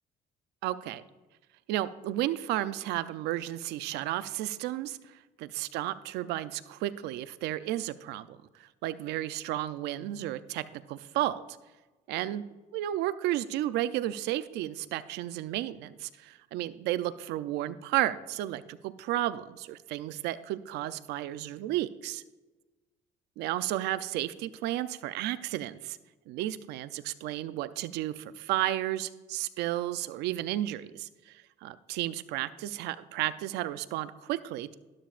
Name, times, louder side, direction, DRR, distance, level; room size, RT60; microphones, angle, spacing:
voice 1, 0.6-1.0 1.7-11.4 12.1-12.4 12.7-22.2 23.4-26.0 26.3-34.7, right 14 dB, 90° right, 14 dB, 0.5 m, -33 dB
12.5 x 12.0 x 2.5 m, 1.2 s
cardioid pair, 110°, 17 cm